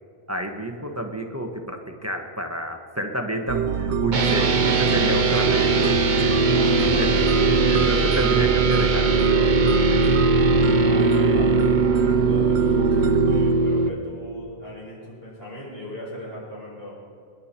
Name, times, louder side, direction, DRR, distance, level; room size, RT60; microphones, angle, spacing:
voice 1, 0.3-5.7 7.0-7.1 7.7-10.0, right 1 dB, 15° right, 3 dB, 1.1 m, -29 dB
sound 1, 3.5-13.5, right 7 dB, 90° right, 1.0 m, -25 dB
sound 2, 4.1-13.9, right 3 dB, 50° right, 1.0 m, -20 dB
voice 2, 6.5-7.4 10.8-16.9, equal, 65° left, -5 dB, 5.4 m, -37 dB
26.5 x 11.0 x 4.4 m, 2.3 s
omnidirectional pair, 1.1 m